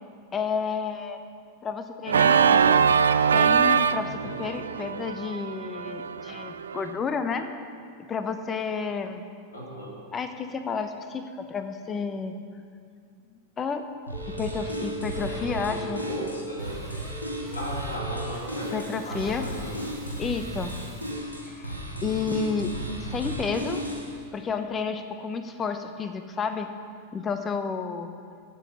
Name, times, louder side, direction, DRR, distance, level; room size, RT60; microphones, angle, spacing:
voice 1, 0.3-1.2 1.6-2.8 3.3-7.5 8.0-9.2 10.1-12.4 13.6-13.8 14.4-16.0 18.7-19.5 20.2-20.7 21.5-21.6 22.0-22.7 23.0-23.8 24.3-26.7 27.1-28.1, left 5 dB, 20° left, 9 dB, 1.0 m, -31 dB
Organ, 2.1-6.9, right 6 dB, 70° right, 0.3 m, -22 dB
voice 2, 4.0-4.4 9.5-9.9 15.3-17.0 17.5-19.8 22.0-22.6, equal, 70° left, -3 dB, 3.1 m, -37 dB
sound 1, 14.1-24.2, equal, 90° left, 1.8 m, -35 dB
sound 2, 14.1-21.2, right 2 dB, 5° left, 3.0 m, -41 dB
15.0 x 7.3 x 5.5 m, 2.3 s
figure-of-eight pair, 90°, 0 cm